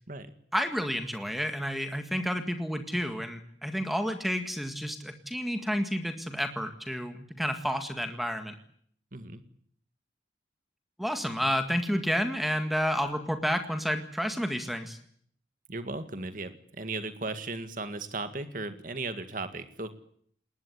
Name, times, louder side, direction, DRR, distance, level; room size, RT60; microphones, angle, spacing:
voice 1, 0.5-8.5 11.0-15.0, equal, ahead, 7 dB, 1.8 m, -30 dB
voice 2, 9.1-9.4 15.7-19.9, right 3 dB, 45° right, 9 dB, 2.0 m, -36 dB
20.5 x 19.5 x 9.7 m, 0.62 s
head